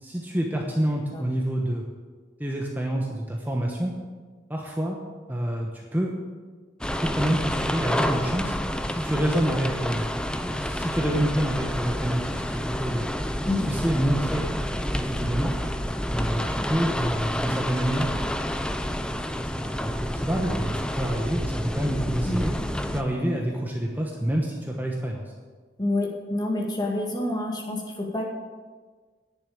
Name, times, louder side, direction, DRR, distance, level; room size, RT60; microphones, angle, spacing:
voice 1, 0.0-1.8 2.4-3.9 4.5-5.0 5.3-6.1 7.0-8.5 8.9-10.0 10.4-13.1 13.6-14.5 15.0-15.6 16.1-18.1 19.4-22.5 22.9-25.2, right 1 dB, 10° right, 0 dB, 1.0 m, -27 dB
sound 1, 6.8-23.0, equal, 5° left, 0.5 m, -29 dB
voice 2, 25.8-28.2, left 1 dB, 25° left, -1 dB, 2.2 m, -27 dB
10.5 x 7.0 x 8.6 m, 1.4 s
head